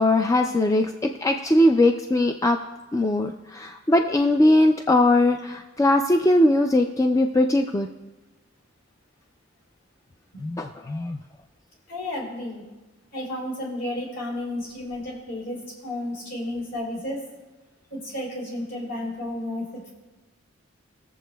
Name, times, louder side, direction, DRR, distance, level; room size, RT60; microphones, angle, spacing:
voice 1, 0.0-2.6 2.9-7.9 10.4-11.2, left 1 dB, 15° left, 4 dB, 0.3 m, -20 dB
voice 2, 11.9-12.7 13.1-17.2 17.9-19.9, left 1 dB, 55° left, -4 dB, 3.9 m, -32 dB
21.0 x 7.3 x 2.3 m, 1.1 s
head